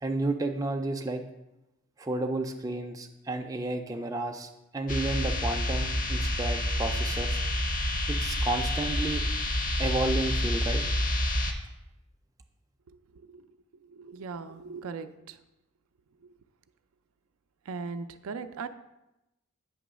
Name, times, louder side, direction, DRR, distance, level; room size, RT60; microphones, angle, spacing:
voice 1, 0.0-1.2 2.0-7.4 8.1-9.2 9.8-10.8, right 2 dB, 15° right, 4 dB, 0.4 m, -32 dB
sound 1, 4.9-11.5, left 1 dB, 40° left, 0.6 m, -28 dB
voice 2, 13.8-15.4 17.7-18.7, right 5 dB, 80° right, 10 dB, 0.4 m, -39 dB
8.6 x 3.0 x 6.1 m, 0.93 s
head